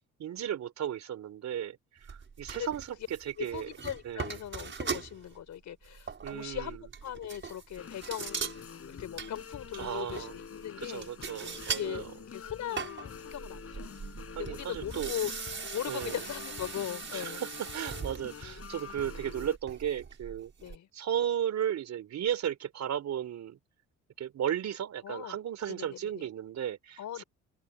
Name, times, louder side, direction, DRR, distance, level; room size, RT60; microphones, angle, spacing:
voice 1, 0.2-1.8 2.1-3.7 4.0-4.4 6.2-6.9 9.7-10.4 10.8-12.1 14.3-15.1 15.9-16.2 17.1-20.5 20.9-23.6 24.2-27.2, right 10 dB, 65° right, 4.3 m, -35 dB
sound 1, 2.0-5.4 5.8-11.9 12.2-20.8, right 5 dB, 40° right, 6.2 m, -41 dB
voice 2, 3.4-11.1 11.7-12.1 12.3-14.0 14.4-17.4 20.6-20.9 25.0-26.3 27.0-27.2, left 11 dB, 70° left, 4.9 m, -39 dB
sound 2, 7.8-19.6, left 7 dB, 50° left, 7.6 m, -46 dB
open air
cardioid pair, 90°, 30 cm